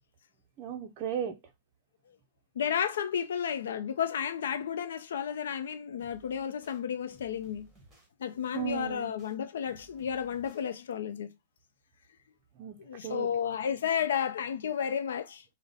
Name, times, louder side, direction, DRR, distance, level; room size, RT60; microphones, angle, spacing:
voice 1, 0.6-1.4 8.5-9.1 12.6-13.3, right 9 dB, 30° right, 0.5 m, -36 dB
voice 2, 2.6-7.7 8.2-11.3 12.9-15.4, left 8 dB, 85° left, 0.5 m, -32 dB
sound 1, 6.0-6.8 7.1-8.1 8.5-9.3 9.7-10.6, right 2 dB, 5° right, 1.2 m, -59 dB
4.8 x 2.1 x 3.9 m
supercardioid pair, 170°, 0 cm